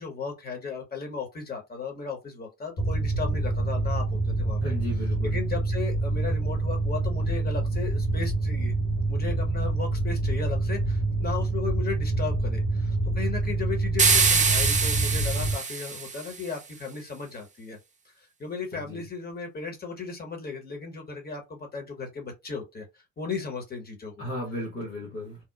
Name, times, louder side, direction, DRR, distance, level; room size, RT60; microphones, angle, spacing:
voice 1, 0.0-4.6 5.2-8.7 9.1-17.8 18.2-24.1, left 5 dB, 25° left, 1.1 m, -36 dB
Mechanical fan, 2.8-15.5, right 2 dB, 55° left, 1.6 m, -27 dB
voice 2, 4.6-5.4 18.7-19.0 24.2-25.4, left 1 dB, 75° left, 1.2 m, -35 dB
sound 1, 14.0-16.4, right 5 dB, 20° right, 0.6 m, -24 dB
2.9 x 2.0 x 2.2 m
hypercardioid pair, 55°, 36 cm